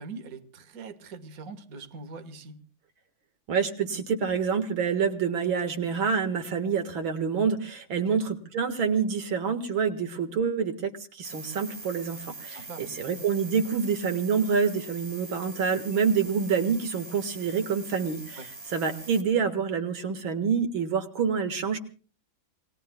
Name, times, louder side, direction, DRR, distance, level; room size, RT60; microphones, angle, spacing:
voice 1, 0.0-2.6 8.0-8.3 12.5-12.9 18.4-18.5, right 4 dB, 45° right, 7 dB, 1.9 m, -42 dB
voice 2, 3.5-18.4 18.7-21.8, right 6 dB, 80° right, 7 dB, 2.5 m, -27 dB
sound 1, 11.2-19.2, right 2 dB, 30° right, 2.8 m, -43 dB
28.5 x 21.5 x 2.3 m, 0.40 s
omnidirectional pair, 2.2 m